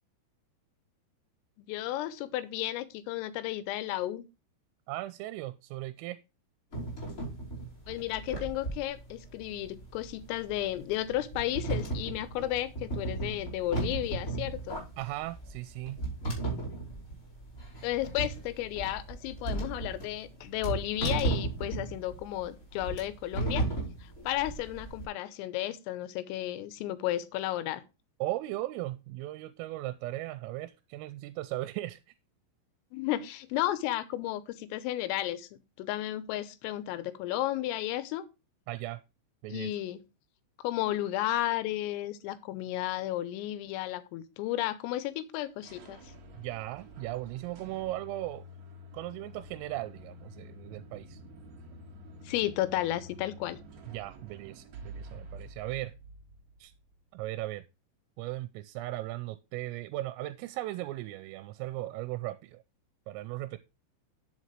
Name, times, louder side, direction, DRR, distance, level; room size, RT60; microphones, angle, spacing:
voice 1, 1.6-4.2 7.9-14.8 17.8-23.7 24.0-27.8 32.9-35.5 35.8-38.3 39.5-40.0 40.6-46.0 52.3-53.6, left 14 dB, 85° left, 3.5 m, -33 dB
voice 2, 4.9-6.2 15.0-16.0 28.2-32.1 38.7-39.0 39.4-39.7 46.3-48.5 48.9-51.2 53.9-55.9 56.6-56.7 57.1-57.6 58.2-62.6 63.1-63.6, right 16 dB, 85° right, 3.2 m, -37 dB
sound 1, 6.7-25.0, right 2 dB, 15° left, 4.8 m, -35 dB
sound 2, 45.3-57.0, equal, 65° right, 1.7 m, -49 dB
11.0 x 7.3 x 3.2 m
omnidirectional pair, 5.9 m